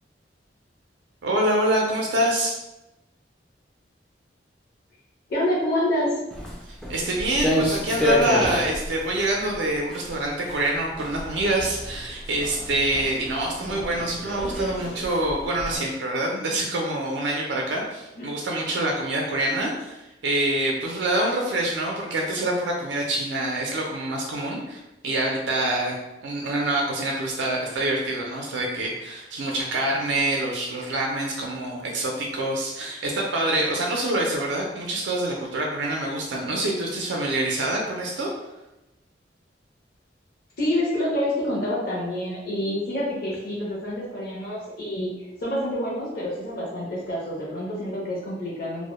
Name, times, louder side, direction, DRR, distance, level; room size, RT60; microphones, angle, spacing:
voice 1, 1.2-2.6 6.9-38.3, right 1 dB, 80° right, 0 dB, 0.4 m, -26 dB
voice 2, 5.3-6.2 18.2-18.3 40.6-48.9, left 1 dB, 55° left, -5 dB, 0.6 m, -27 dB
Walk footsteps, 6.3-15.8, equal, 5° left, 0.3 m, -30 dB
2.1 x 2.0 x 2.9 m, 0.96 s
head